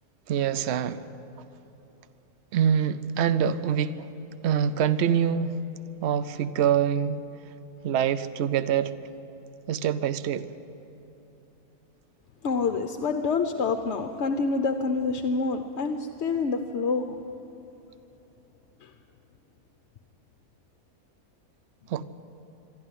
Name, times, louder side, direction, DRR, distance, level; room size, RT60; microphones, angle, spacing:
voice 1, 0.3-1.0 2.5-4.1 4.4-5.6 6.0-7.2 7.8-8.9 9.7-10.5 21.9-22.0, right 8 dB, 55° right, 0.8 m, -25 dB
voice 2, 12.4-17.0, left 4 dB, 55° left, 1.0 m, -27 dB
24.0 x 13.0 x 9.8 m
omnidirectional pair, 1.6 m